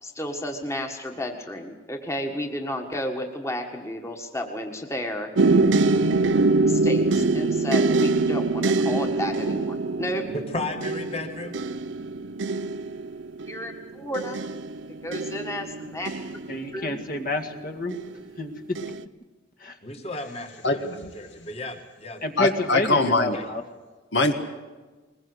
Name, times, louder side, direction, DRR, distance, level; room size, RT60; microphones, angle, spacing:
voice 1, 0.0-5.3 6.7-10.3 13.5-14.4 15.0-16.1 16.7-16.9, left 1 dB, 15° left, 3 dB, 1.7 m, -32 dB
sound 1, 5.4-17.2 17.9-18.4 18.8-19.0, right 3 dB, 80° right, 0.8 m, -24 dB
voice 2, 10.3-11.6 19.8-23.5, left 2 dB, 35° left, 5 dB, 2.2 m, -35 dB
voice 3, 16.5-17.9 18.4-18.5 19.6-19.8 22.2-23.6, left 2 dB, 50° left, 6 dB, 2.0 m, -29 dB
voice 4, 20.6-21.1 22.4-23.4 24.1-24.3, left 2 dB, 70° left, 6 dB, 1.6 m, -22 dB
21.0 x 21.0 x 8.0 m, 1.3 s
head